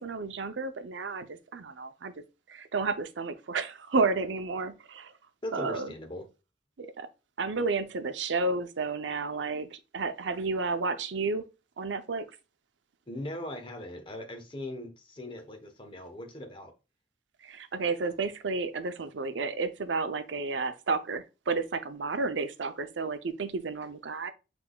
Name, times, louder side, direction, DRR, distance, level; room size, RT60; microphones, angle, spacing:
voice 1, 0.0-2.1 2.5-5.1 5.5-5.9 6.8-7.1 7.4-11.4 11.8-12.2 17.4-24.3, right 4 dB, 85° right, 0.6 m, -31 dB
voice 2, 5.4-6.3 13.1-16.7, left 1 dB, 30° left, 1.0 m, -39 dB
6.0 x 3.4 x 2.2 m
head